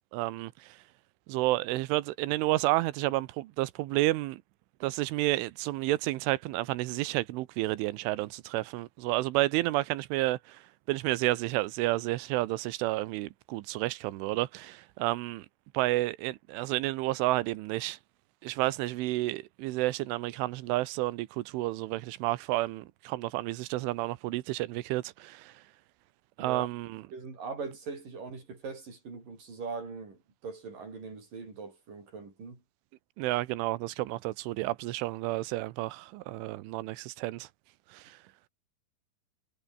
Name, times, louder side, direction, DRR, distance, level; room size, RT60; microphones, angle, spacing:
voice 1, 0.1-0.8 1.3-4.4 4.8-10.6 10.9-15.5 15.7-18.0 18.4-25.6 26.4-27.0 33.2-37.5 37.9-38.2, right 18 dB, 90° right, 3.4 m, -31 dB
voice 2, 27.1-32.6, right 4 dB, 45° right, 9.0 m, -41 dB
omnidirectional pair, 5.5 m